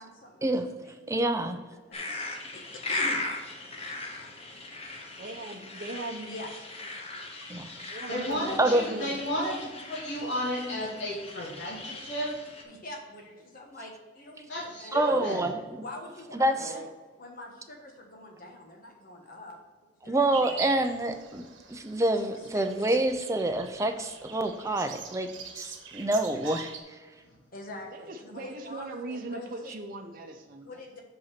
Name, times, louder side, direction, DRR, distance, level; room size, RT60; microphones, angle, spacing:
voice 1, 0.0-0.5 0.8-0.9 1.9-2.0 2.3-3.2 3.5-3.7 6.3-6.5 12.6-15.4 15.8-16.4 16.7-16.8 17.2-20.8 21.6-22.0 22.3-23.0 27.5-29.7 30.6-31.0, left 1 dB, 50° left, 1 dB, 1.3 m, -45 dB
voice 2, 1.1-1.6 7.5-7.7 8.6-8.8 14.9-15.6 16.3-16.7 20.0-25.3 25.5-26.7, right 1 dB, 15° right, 6 dB, 0.6 m, -27 dB
sound 1, 1.9-12.6, left 2 dB, 35° left, 1.1 m, -38 dB
voice 3, 5.2-6.3 7.9-9.2 14.9-15.4 16.5-16.9 27.9-30.7, right 2 dB, 50° right, 3 dB, 0.8 m, -40 dB
voice 4, 8.1-12.4 14.5-15.5, equal, 80° left, -4 dB, 2.5 m, -33 dB
sound 2, 20.3-26.8, right 6 dB, 75° right, 1.1 m, -44 dB
5.7 x 5.4 x 5.9 m, 1.3 s
head